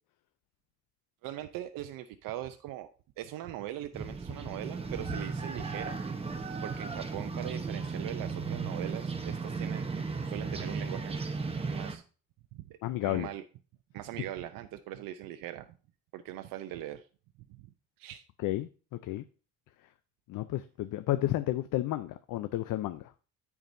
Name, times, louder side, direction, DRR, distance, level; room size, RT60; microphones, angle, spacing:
voice 1, 1.2-2.9 3.2-6.0 6.6-11.2 11.7-12.0 12.5-13.4 13.9-15.7 16.1-17.1 17.5-17.7 18.0-18.2, right 13 dB, 85° right, 0.7 m, -41 dB
sound 1, 3.9-12.0, right 4 dB, 15° right, 1.0 m, -35 dB
voice 2, 12.8-13.3 18.4-18.7 19.0-19.2 20.3-23.1, left 15 dB, 70° left, 0.6 m, -31 dB
14.0 x 4.8 x 2.6 m
cardioid pair, 125°, 33 cm